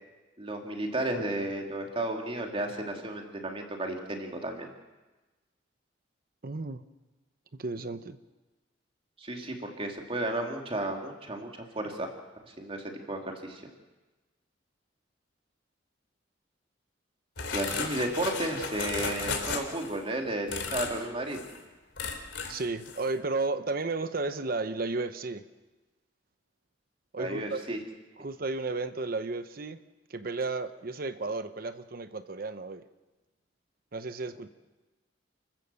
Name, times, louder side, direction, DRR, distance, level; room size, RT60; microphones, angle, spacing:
voice 1, 0.4-4.7 9.2-11.5 11.7-12.1 12.5-13.6 17.5-21.4 27.2-27.8, right 1 dB, 30° right, 2 dB, 2.8 m, -33 dB
voice 2, 6.4-6.8 7.6-8.2 22.5-25.4 27.1-27.8 28.2-29.8 30.1-32.8 33.9-34.5, right 3 dB, 50° right, 11 dB, 0.9 m, -33 dB
sound 1, 17.4-20.0 20.5-21.0 21.3-21.6 22.0-22.6 22.9-23.1, left 5 dB, 75° left, 3.3 m, -34 dB
29.5 x 15.0 x 7.0 m, 1.2 s
head